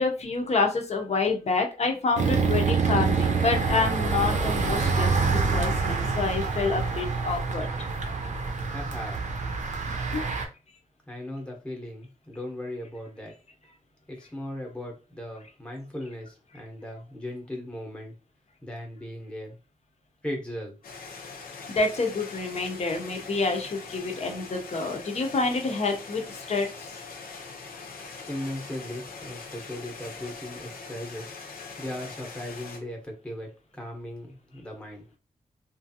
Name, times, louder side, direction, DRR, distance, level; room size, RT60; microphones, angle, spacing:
voice 1, 0.0-7.7 21.7-26.9, left 3 dB, 45° left, 3 dB, 0.6 m, -28 dB
sound 1, 2.2-10.4, right 4 dB, 55° right, 0.6 m, -26 dB
voice 2, 8.7-9.2 11.1-13.3 14.1-18.1 18.6-19.6 20.2-20.8 28.0-35.2, left 1 dB, 5° left, 1 dB, 0.8 m, -38 dB
sound 2, 20.8-32.8, left 4 dB, 85° left, 0.7 m, -42 dB
3.0 x 2.5 x 2.7 m, 0.32 s
wide cardioid pair, 150°, 15 cm